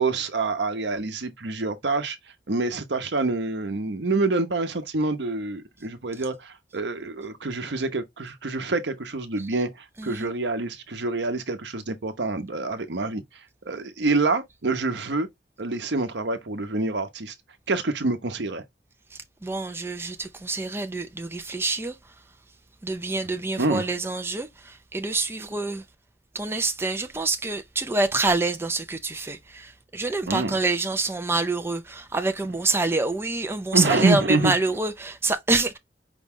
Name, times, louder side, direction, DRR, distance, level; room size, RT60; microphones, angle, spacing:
voice 1, 0.0-2.2 2.5-13.2 13.6-15.3 15.6-17.3 17.7-18.6 23.6-23.9 30.3-30.5 33.7-34.5, right 3 dB, 75° right, 0.8 m, -26 dB
voice 2, 10.0-10.3 19.4-22.0 22.8-25.8 26.3-35.8, right 3 dB, 15° right, 0.5 m, -26 dB
5.2 x 2.3 x 3.6 m
head